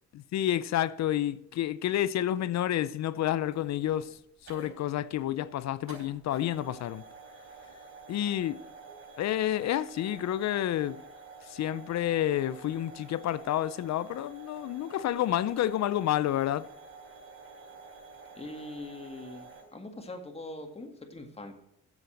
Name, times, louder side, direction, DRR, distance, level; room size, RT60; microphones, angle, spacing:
voice 1, 0.1-4.2 4.5-7.0 8.1-8.6 9.2-11.0 11.4-16.7, left 12 dB, 65° left, 0.5 m, -29 dB
sound 1, 3.4-19.6, right 4 dB, 45° right, 4.1 m, -50 dB
voice 2, 18.4-21.5, left 2 dB, 20° left, 2.0 m, -42 dB
7.8 x 7.3 x 7.8 m
cardioid pair, 90°, 30 cm